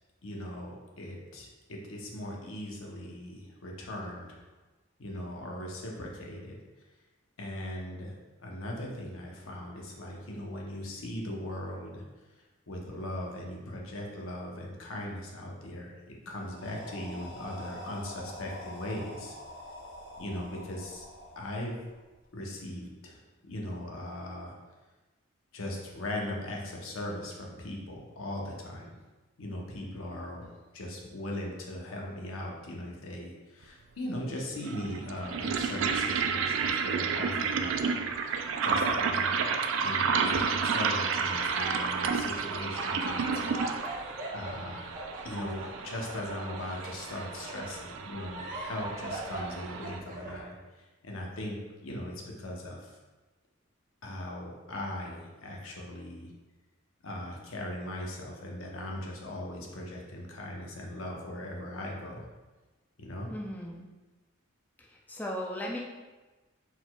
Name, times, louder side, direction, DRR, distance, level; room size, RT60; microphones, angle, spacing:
voice 1, 0.2-4.4 5.0-6.6 7.4-8.1 8.4-12.0 12.7-19.4 20.2-21.0 21.4-21.8 22.3-24.5 25.5-29.0 29.4-37.9 38.6-43.7 44.0-44.8 45.2-50.5 51.0-52.9 54.0-56.3 57.0-62.3 63.0-63.3, left 1 dB, 85° left, -1 dB, 0.8 m, -39 dB
sound 1, 16.4-22.3, left 1 dB, 55° left, 0.8 m, -46 dB
sound 2, 33.6-33.7 34.6-50.0, right 5 dB, 70° right, 0.3 m, -31 dB
sound 3, 36.0-50.4, right 1 dB, 40° right, 0.7 m, -42 dB
voice 2, 63.3-63.9 64.8-65.8, equal, 10° left, -2 dB, 0.4 m, -37 dB
4.3 x 4.1 x 2.3 m, 1.2 s
head